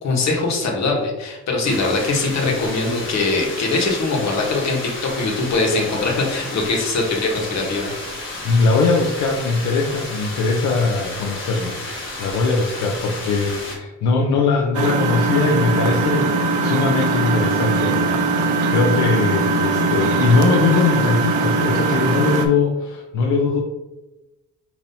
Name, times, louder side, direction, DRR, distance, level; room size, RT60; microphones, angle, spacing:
voice 1, 0.0-7.9, left 3 dB, 60° left, -1 dB, 1.3 m, -22 dB
sound 1, 1.6-13.8, left 2 dB, 40° left, 1.3 m, -32 dB
voice 2, 8.4-23.6, left 4 dB, 80° left, 0 dB, 0.6 m, -20 dB
Engine, 14.7-22.5, right 3 dB, 90° right, 0.6 m, -20 dB
5.3 x 2.9 x 2.7 m, 1.0 s
cardioid pair, 90°, 30 cm